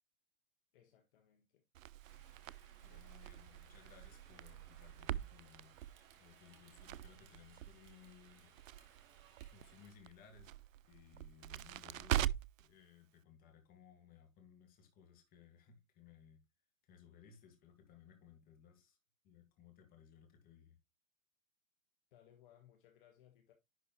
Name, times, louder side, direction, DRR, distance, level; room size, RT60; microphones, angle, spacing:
voice 1, 0.7-1.6 2.8-3.1 22.1-23.5, left 11 dB, 40° left, 1.4 m, -66 dB
Crackle, 1.7-12.7, right 12 dB, 70° right, 0.5 m, -43 dB
Rain, 2.0-10.0, right 7 dB, 40° right, 2.0 m, -65 dB
voice 2, 2.8-5.7 6.2-8.5 9.5-10.5 10.8-12.3 12.6-16.4 16.8-19.0 19.2-20.8, left 7 dB, 20° left, 1.9 m, -62 dB
10.5 x 4.4 x 3.0 m
hypercardioid pair, 135°, 40 cm